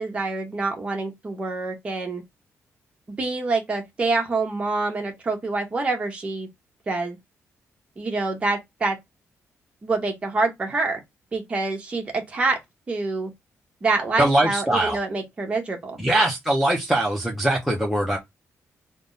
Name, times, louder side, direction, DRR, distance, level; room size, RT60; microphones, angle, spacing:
voice 1, 0.0-2.2 3.1-6.5 6.9-7.2 8.0-9.0 9.8-11.0 11.3-12.6 12.9-13.3 13.8-16.0, right 3 dB, 25° right, 0.9 m, -26 dB
voice 2, 14.2-15.0 16.0-18.2, right 1 dB, ahead, 0.5 m, -21 dB
3.4 x 2.1 x 3.8 m
wide cardioid pair, 180°, 5 cm